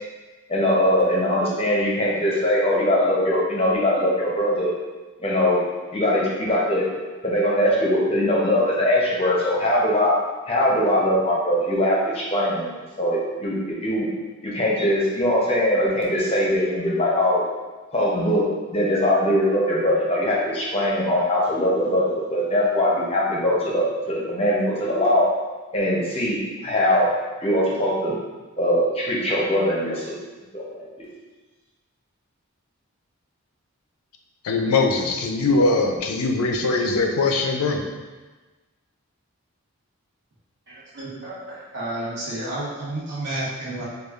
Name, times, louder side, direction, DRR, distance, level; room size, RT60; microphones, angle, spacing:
voice 1, 0.5-4.7 5.2-5.6 5.9-6.9 7.2-10.2 10.5-14.1 14.4-17.4 17.9-25.3 25.7-27.1 27.4-28.1 28.6-30.2 30.5-31.1, left 1 dB, 25° left, -4 dB, 0.6 m, -21 dB
voice 2, 34.4-37.8, left 3 dB, 80° left, 3 dB, 0.4 m, -21 dB
voice 3, 40.7-43.9, right 1 dB, 50° right, -8 dB, 1.0 m, -31 dB
4.9 x 2.3 x 2.4 m, 1.2 s
head